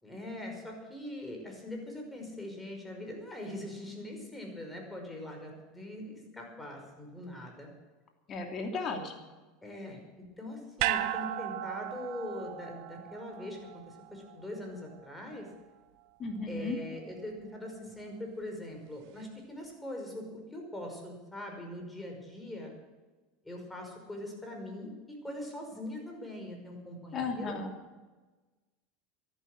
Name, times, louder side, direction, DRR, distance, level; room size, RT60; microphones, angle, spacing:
voice 1, 0.0-7.7 9.6-13.6 13.9-15.5 16.5-20.3 20.5-22.7 23.4-27.6, left 1 dB, 10° left, 2 dB, 5.5 m, -42 dB
voice 2, 8.3-9.2 16.2-16.8 27.1-27.7, left 4 dB, 40° left, 4 dB, 2.9 m, -35 dB
sound 1, 10.8-15.1 15.5-15.6, right 14 dB, 65° right, 0.9 m, -36 dB
13.5 x 11.5 x 7.8 m, 1.2 s
hypercardioid pair, 95°, 0 cm